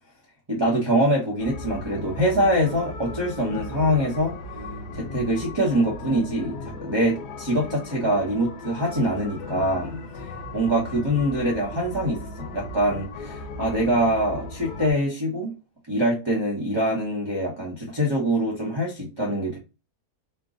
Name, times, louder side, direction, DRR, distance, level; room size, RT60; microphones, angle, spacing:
voice 1, 0.5-4.3 4.9-9.9 10.2-15.5 15.9-19.6, equal, 20° right, -5 dB, 0.9 m, -24 dB
sound 1, 1.4-14.9, left 2 dB, 80° left, 1.5 m, -36 dB
4.5 x 2.3 x 3.8 m, 0.29 s
omnidirectional pair, 1.7 m